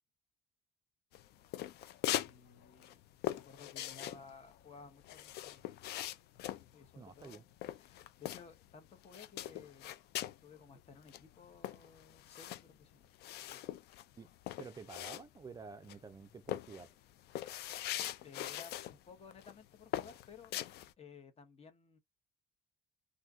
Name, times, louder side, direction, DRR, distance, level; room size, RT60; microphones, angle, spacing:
sound 1, 1.1-2.4 2.6-8.7 9.0-10.4 10.8-10.9 11.1-15.6 15.9-16.1 16.5-19.0 19.3-19.6 19.9-20.9, left 13 dB, 75° left, 0.4 m, -41 dB
voice 1, 2.2-3.0 3.3-5.9 6.7-13.1 13.5-13.7 18.2-20.6 21.0-22.0, left 5 dB, 35° left, 0.9 m, -57 dB
voice 2, 7.0-7.4 14.2-14.3 14.6-16.9, right 5 dB, 20° right, 0.4 m, -50 dB
2.6 x 2.3 x 3.4 m
cardioid pair, 110°, 17 cm